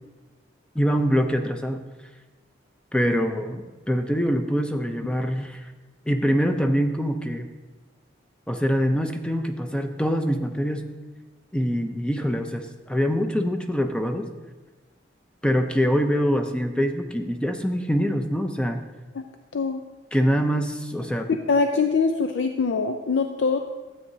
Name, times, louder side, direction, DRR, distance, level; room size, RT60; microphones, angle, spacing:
voice 1, 0.7-1.8 2.9-5.7 6.1-7.5 8.5-10.9 11.5-14.3 15.4-18.8 20.1-21.3, equal, 5° left, 6 dB, 0.5 m, -24 dB
voice 2, 21.5-23.6, left 4 dB, 90° left, 6 dB, 0.5 m, -23 dB
13.0 x 8.6 x 2.7 m, 1.2 s
head